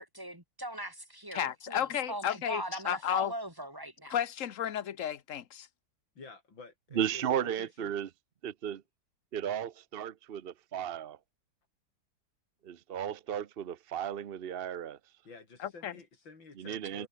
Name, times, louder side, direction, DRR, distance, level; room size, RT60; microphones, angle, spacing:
voice 1, 0.0-4.1, right 1 dB, 10° right, 3.2 m, -40 dB
voice 2, 1.3-3.3 4.1-5.7 15.6-15.9, left 10 dB, 50° left, 1.3 m, -33 dB
voice 3, 6.1-8.0 15.2-17.1, left 4 dB, 80° left, 4.9 m, -51 dB
voice 4, 7.0-8.1 8.4-8.8 9.3-11.2 12.6-15.0 16.6-17.1, right 9 dB, 60° right, 0.6 m, -34 dB
omnidirectional pair, 2.0 m